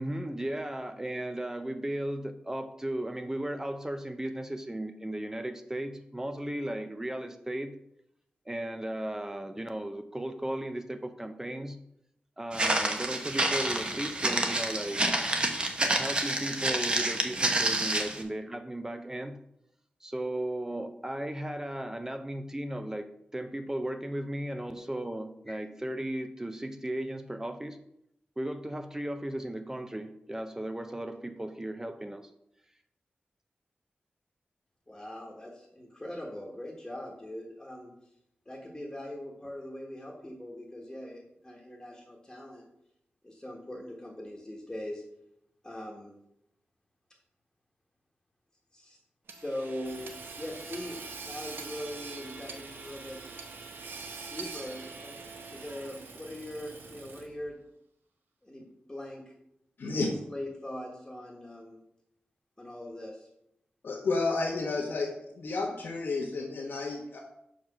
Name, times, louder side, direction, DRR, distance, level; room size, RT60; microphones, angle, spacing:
voice 1, 0.0-7.7 8.5-11.8 12.4-15.0 15.9-19.4 20.0-23.1 23.3-27.8 28.4-32.3, right 1 dB, 15° right, 8 dB, 0.5 m, -36 dB
Walk footsteps, 12.5-18.2, right 2 dB, 30° right, 0.9 m, -28 dB
voice 2, 34.9-37.9 38.4-42.6 43.2-45.0 45.6-46.2 48.7-49.0 49.3-50.0 50.4-53.2 54.3-55.2 55.5-57.6 58.4-59.3 59.8-61.8 62.6-63.3, left 1 dB, 15° left, -2 dB, 1.3 m, -41 dB
Hammer / Sawing, 49.3-57.5, right 4 dB, 85° right, 0.8 m, -44 dB
voice 3, 63.8-67.2, left 3 dB, 90° left, -3 dB, 1.2 m, -31 dB
5.4 x 5.0 x 6.0 m, 0.79 s
wide cardioid pair, 105°, 3 cm